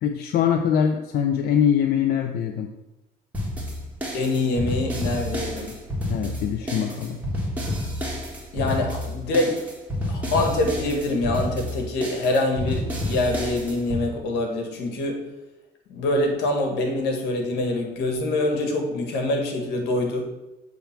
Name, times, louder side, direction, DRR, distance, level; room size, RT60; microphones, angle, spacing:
voice 1, 0.0-2.7 6.1-7.2, left 8 dB, 65° left, 5 dB, 0.6 m, -23 dB
sound 1, 3.3-14.0, left 1 dB, 10° right, 1.9 m, -29 dB
voice 2, 4.1-5.8 8.5-9.6 10.1-15.2 15.9-20.3, left 2 dB, 90° left, 3 dB, 1.6 m, -25 dB
7.4 x 3.5 x 5.8 m, 1.0 s
cardioid pair, 110°, 17 cm